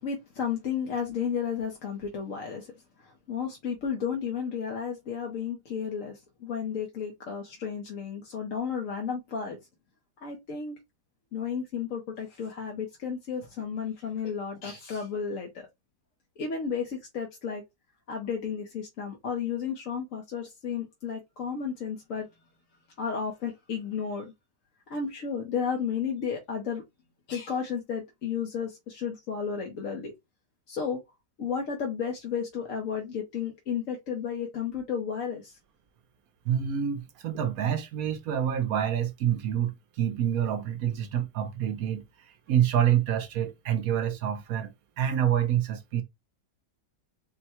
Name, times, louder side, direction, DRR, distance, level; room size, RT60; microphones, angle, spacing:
voice 1, 0.0-2.7 3.0-9.6 10.2-10.8 11.3-15.7 16.4-17.6 18.1-22.3 23.0-24.3 24.9-26.8 27.3-30.1 30.7-31.0 31.4-35.5, left 6 dB, 55° left, 1.1 m, -33 dB
voice 2, 36.5-42.0 42.5-46.0, right 9 dB, 65° right, 0.9 m, -27 dB
4.5 x 2.2 x 4.2 m
omnidirectional pair, 2.0 m